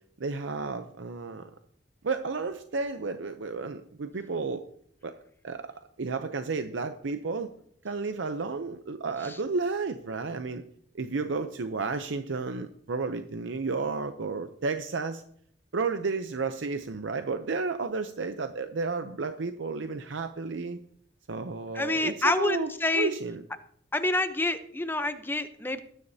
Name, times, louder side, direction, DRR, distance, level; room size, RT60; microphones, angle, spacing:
voice 1, 0.2-1.5 2.0-4.6 5.0-5.1 5.4-5.7 6.0-7.5 7.8-10.6 10.9-15.2 15.7-20.8 21.3-23.4, right 4 dB, 70° right, 8 dB, 0.6 m, -32 dB
voice 2, 21.7-23.1 23.9-25.8, left 2 dB, 10° left, 10 dB, 0.7 m, -27 dB
19.5 x 9.9 x 2.8 m, 0.65 s
head